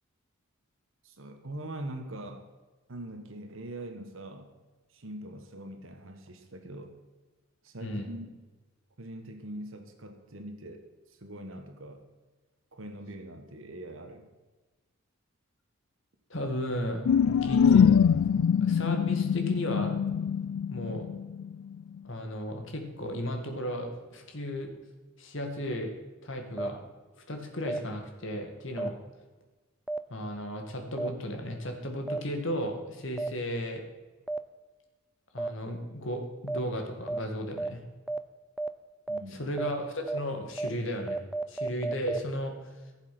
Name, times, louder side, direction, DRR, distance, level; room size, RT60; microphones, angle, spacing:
voice 1, 1.0-2.5 2.9-4.5 4.9-6.9 7.6-8.3 9.0-12.0 12.7-14.3 39.1-39.5, right 1 dB, 70° right, 6 dB, 1.4 m, -42 dB
voice 2, 16.3-17.9 18.6-20.0 20.7-21.1 22.0-24.7 25.2-25.9 26.2-26.8 27.3-29.0 30.1-33.8 35.3-37.8 39.3-41.2 41.5-42.5, equal, 65° left, 4 dB, 2.1 m, -34 dB
sound 1, 17.1-21.6, left 7 dB, 85° left, 0.4 m, -24 dB
sound 2, 26.6-26.7 27.7-27.8 28.8-28.9 29.9-30.0 31.0-31.1 32.1-32.2 33.2-33.3 34.3-34.4 35.4-35.5 36.5-36.6 37.1-37.2 37.6-37.7 38.1-38.2 38.6-38.7 39.1-39.2 39.6-39.7 40.1-40.2 40.6-40.7 41.1-42.2, right 2 dB, ahead, 0.5 m, -31 dB
15.0 x 7.4 x 6.0 m, 1.2 s
head